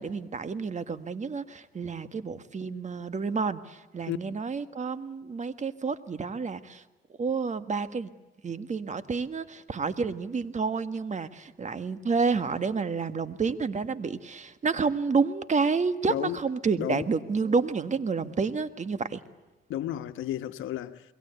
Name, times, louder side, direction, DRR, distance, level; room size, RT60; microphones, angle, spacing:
voice 1, 0.0-6.8 7.2-8.1 8.4-19.2, right 5 dB, 35° right, 1.7 m, -29 dB
voice 2, 16.1-16.4 16.8-17.1 19.7-21.0, left 12 dB, 85° left, 1.3 m, -32 dB
27.5 x 22.5 x 8.1 m
cardioid pair, 90°, 20 cm